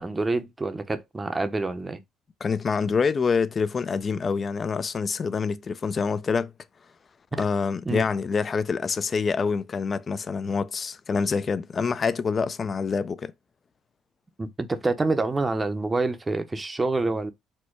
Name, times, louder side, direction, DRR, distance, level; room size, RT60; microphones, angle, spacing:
voice 1, 0.0-2.0 7.3-7.4 7.8-8.1 14.4-17.3, right 3 dB, 20° right, 0.6 m, -27 dB
voice 2, 2.4-6.5 7.4-13.3, left 5 dB, 35° left, 0.4 m, -26 dB
4.4 x 2.1 x 4.5 m
cardioid pair, 90°, 0 cm